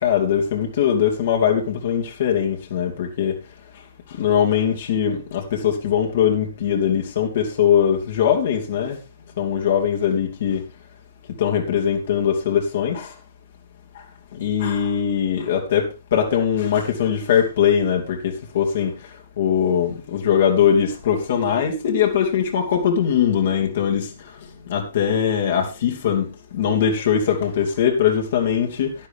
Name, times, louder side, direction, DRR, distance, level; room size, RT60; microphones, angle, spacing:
voice 1, 0.0-3.4 4.1-9.0 9.4-10.6 11.4-13.1 14.3-19.0 19.4-24.1 24.7-28.9, left 8 dB, 50° left, 2.9 m, -21 dB
11.5 x 11.5 x 3.7 m
figure-of-eight pair, 115°, 0 cm